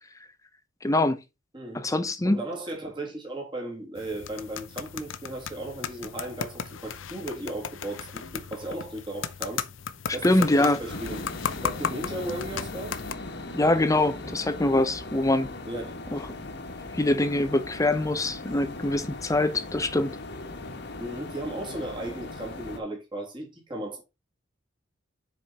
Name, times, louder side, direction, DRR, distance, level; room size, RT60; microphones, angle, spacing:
voice 1, 0.8-1.2 1.7-2.4 10.2-10.8 13.5-15.5 16.1-16.2 16.9-20.2, left 2 dB, 15° left, 0.7 m, -24 dB
voice 2, 1.5-1.9 2.2-9.6 10.1-11.3 11.6-13.0 15.7-16.0 21.0-24.0, right 1 dB, 25° right, 2.7 m, -36 dB
sound 1, 4.0-13.1, left 7 dB, 85° left, 0.7 m, -36 dB
sound 2, 10.9-22.8, left 2 dB, 60° left, 1.5 m, -39 dB
7.5 x 5.1 x 4.1 m
head